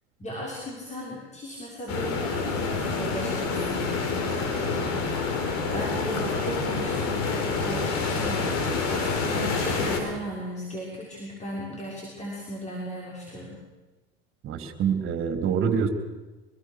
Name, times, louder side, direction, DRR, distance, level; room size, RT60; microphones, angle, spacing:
voice 1, 0.2-13.6, equal, 20° left, -3 dB, 6.3 m, -37 dB
sound 1, 1.9-10.0, left 4 dB, 55° left, 4.9 m, -27 dB
voice 2, 14.4-15.9, right 7 dB, 40° right, 6 dB, 3.6 m, -25 dB
25.0 x 21.0 x 6.7 m, 1.2 s
hypercardioid pair, 90°, 32 cm